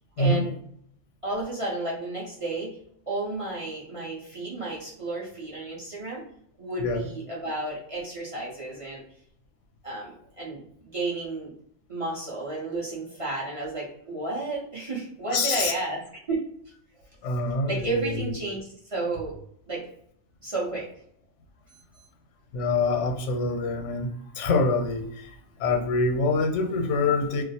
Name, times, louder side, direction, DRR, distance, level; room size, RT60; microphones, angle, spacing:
voice 1, 0.2-0.5 1.2-2.8 3.1-6.2 6.6-9.0 9.8-11.5 11.9-16.0 16.3-16.4 17.7-18.6 18.9-19.3 19.7-19.9 20.4-20.9, right 2 dB, 35° right, -6 dB, 0.6 m, -32 dB
voice 2, 15.3-15.7 17.2-18.2 22.5-24.1 24.3-27.4, left 3 dB, 85° left, 3 dB, 0.9 m, -25 dB
2.3 x 2.0 x 2.6 m, 0.67 s
omnidirectional pair, 1.2 m